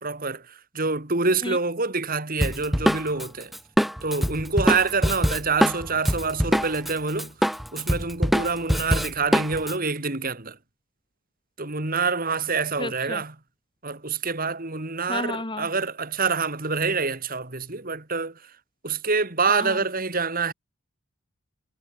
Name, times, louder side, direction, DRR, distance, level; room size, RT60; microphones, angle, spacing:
voice 1, 0.0-3.5 4.0-7.3 7.7-10.6 11.6-13.4 13.8-18.3 18.8-20.5, right 4 dB, 40° right, 2.2 m, -26 dB
Drum kit, 2.4-6.9 7.2-9.7, equal, ahead, 1.8 m, -23 dB
voice 2, 12.8-13.2 15.1-15.7 19.5-19.8, left 2 dB, 20° left, 2.1 m, -32 dB
head